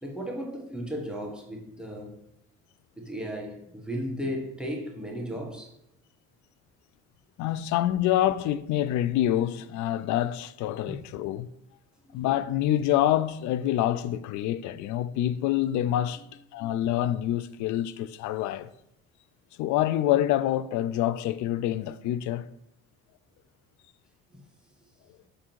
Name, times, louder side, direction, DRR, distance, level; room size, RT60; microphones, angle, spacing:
voice 1, 0.0-2.2 3.0-5.7 10.9-11.0 12.1-12.3 16.2-16.3, equal, 5° right, 1.5 m, -35 dB
voice 2, 7.4-11.5 12.1-16.2 16.5-18.7 19.6-22.4, left 12 dB, 75° left, 0.5 m, -26 dB
6.7 x 3.8 x 4.5 m
supercardioid pair, 85°, 30 cm